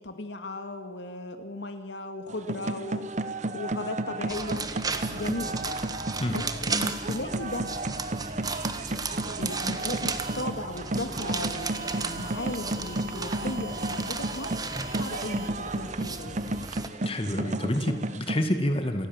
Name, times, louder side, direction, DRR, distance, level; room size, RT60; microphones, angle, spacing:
voice 1, 0.0-3.1 3.5-4.7 5.1-5.8 6.3-7.7 9.3-14.5 15.0-16.6, left 2 dB, 85° left, 7 dB, 2.3 m, -36 dB
sound 1, 2.3-18.4, right 2 dB, 40° right, 1.0 m, -33 dB
sound 2, 4.3-16.9, right 4 dB, 20° right, 1.4 m, -35 dB
sound 3, 6.7-6.9 8.4-8.7 10.2-10.4 11.7-15.5, equal, 60° right, 3.9 m, -43 dB
voice 2, 17.0-19.1, left 1 dB, 30° left, 6 dB, 2.0 m, -28 dB
28.5 x 19.0 x 7.4 m, 1.3 s
head